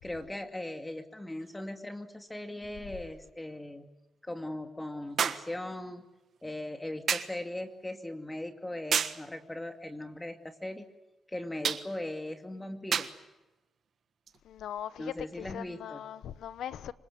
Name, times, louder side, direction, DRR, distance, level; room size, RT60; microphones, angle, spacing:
voice 1, 0.0-3.9 4.2-6.0 6.4-10.9 11.3-13.1 15.0-16.0, left 1 dB, 15° left, 2.4 m, -39 dB
sound 1, 1.4-1.5 5.2-5.5 7.1-7.4 8.9-9.2 11.6-11.9 12.9-13.2 14.3-14.4, right 7 dB, 65° right, 1.4 m, -30 dB
voice 2, 14.5-16.9, left 10 dB, 80° left, 0.9 m, -40 dB
26.0 x 20.0 x 9.3 m
cardioid pair, 70°, 0 cm